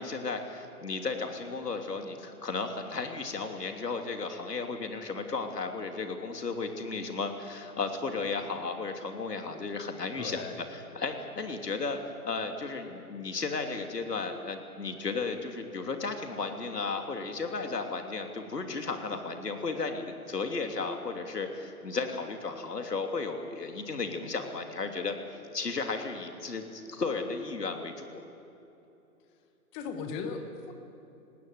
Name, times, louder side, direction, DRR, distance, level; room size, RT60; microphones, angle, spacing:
voice 1, 0.0-10.4 10.7-12.0 12.2-25.1 25.5-28.2, left 4 dB, 80° left, 5 dB, 3.1 m, -34 dB
voice 2, 10.2-10.5 29.7-30.7, left 5 dB, 10° left, 7 dB, 1.1 m, -37 dB
18.5 x 18.0 x 9.4 m, 2.9 s
hypercardioid pair, 150°, 47 cm